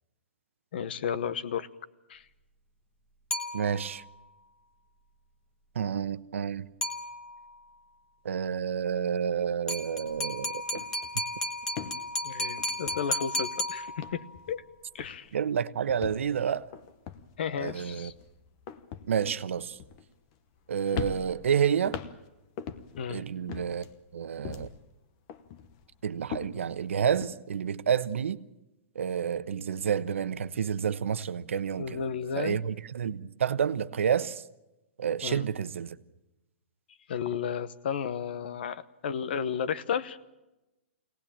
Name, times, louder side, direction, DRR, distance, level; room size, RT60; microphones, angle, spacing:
voice 1, 0.7-1.7 2.1-2.2 12.2-14.6 14.9-15.3 17.4-18.1 23.0-23.2 31.8-32.6 35.2-35.4 37.1-40.2, left 7 dB, 55° left, 1.1 m, -33 dB
sound 1, 3.3-4.1 6.8-7.6 9.7-14.4, left 1 dB, 10° left, 1.2 m, -34 dB
voice 2, 3.5-4.0 5.7-6.7 8.2-10.8 15.3-16.7 17.6-18.1 19.1-19.8 20.7-22.0 23.1-23.8 24.1-24.7 26.0-28.4 28.9-32.0 32.4-34.4 35.0-36.0, right 8 dB, 85° right, 1.0 m, -29 dB
sound 2, 10.0-10.3 10.5-13.5 13.9-14.7 15.0-15.4 15.9-20.6 20.9-23.1 23.5-24.9 25.3-27.3, left 7 dB, 30° left, 1.0 m, -41 dB
23.5 x 18.0 x 8.7 m
hypercardioid pair, 170°, 7 cm